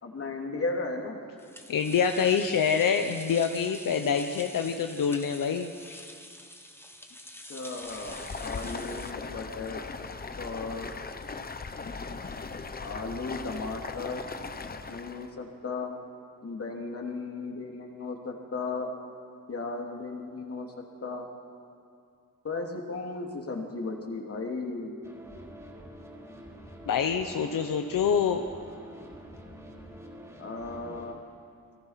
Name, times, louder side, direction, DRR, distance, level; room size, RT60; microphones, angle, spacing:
voice 1, 0.0-1.2 7.5-9.8 10.4-11.1 12.8-14.2 14.9-15.9 16.4-19.0 19.5-20.7 21.0-21.3 22.4-25.0 30.4-31.2, left 3 dB, 45° left, 1 dB, 3.1 m, -35 dB
sound 1, 1.4-9.1, left 1 dB, 5° left, 1.4 m, -46 dB
voice 2, 1.7-6.0 26.9-28.4, left 6 dB, 80° left, 6 dB, 1.1 m, -26 dB
Stream, 7.7-15.3, left 4 dB, 30° left, 1.0 m, -39 dB
sound 2, 25.0-31.1, equal, 10° right, 4.1 m, -47 dB
29.5 x 23.0 x 5.9 m, 2.4 s
wide cardioid pair, 160°, 32 cm